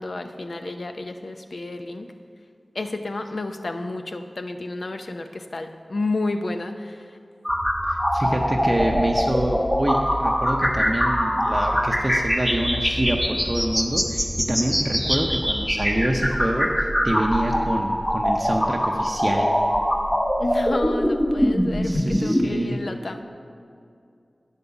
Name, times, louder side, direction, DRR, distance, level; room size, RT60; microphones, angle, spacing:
voice 1, 0.0-2.1 2.7-7.2 20.4-23.2, left 2 dB, 70° left, 7 dB, 0.6 m, -30 dB
sound 1, 7.4-22.4, equal, 15° left, 0.9 m, -23 dB
voice 2, 7.8-19.5 21.8-22.8, right 1 dB, 30° right, 0 dB, 0.6 m, -26 dB
8.8 x 5.5 x 6.9 m, 2.4 s
wide cardioid pair, 65°, 0 cm